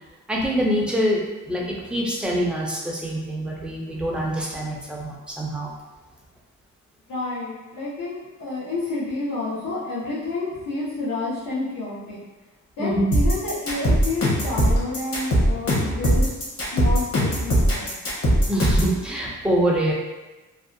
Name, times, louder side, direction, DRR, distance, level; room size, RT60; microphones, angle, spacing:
voice 1, 0.3-1.2 1.5-1.6 1.9-5.7 12.8-13.1 18.5-19.9, right 1 dB, 5° right, -3 dB, 0.3 m, -24 dB
voice 2, 7.1-12.2 12.8-18.0, left 2 dB, 85° left, -8 dB, 0.8 m, -30 dB
sound 1, 13.1-19.0, equal, 45° left, 0.9 m, -20 dB
2.6 x 2.1 x 2.5 m, 1.1 s
cardioid pair, 140°, 32 cm